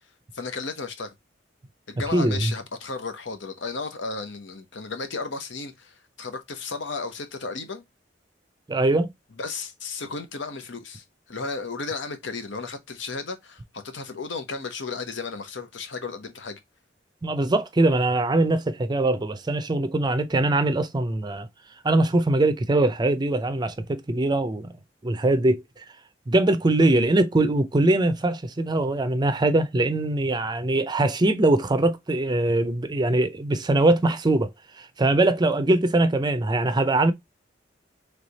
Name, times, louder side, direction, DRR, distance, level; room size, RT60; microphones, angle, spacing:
voice 1, 0.3-1.1 1.9-7.8 9.4-16.6, left 4 dB, 75° left, 0.9 m, -34 dB
voice 2, 2.1-2.5 8.7-9.1 17.2-21.5 21.8-24.7 25.0-25.6 26.3-34.5 34.8-37.1, right 2 dB, 25° right, 0.5 m, -22 dB
3.4 x 3.2 x 3.9 m
head